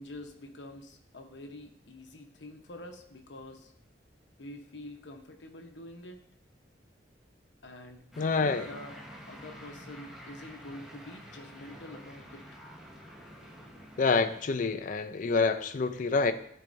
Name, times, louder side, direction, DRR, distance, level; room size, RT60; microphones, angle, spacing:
voice 1, 0.0-3.7 4.4-6.2 7.6-12.6, left 1 dB, 85° left, 4 dB, 1.0 m, -46 dB
sound 1, 8.1-14.4, equal, ahead, 1.1 m, -48 dB
voice 2, 8.2-8.7 14.0-16.3, left 4 dB, 45° left, 9 dB, 0.4 m, -27 dB
13.5 x 4.5 x 2.6 m, 0.69 s
head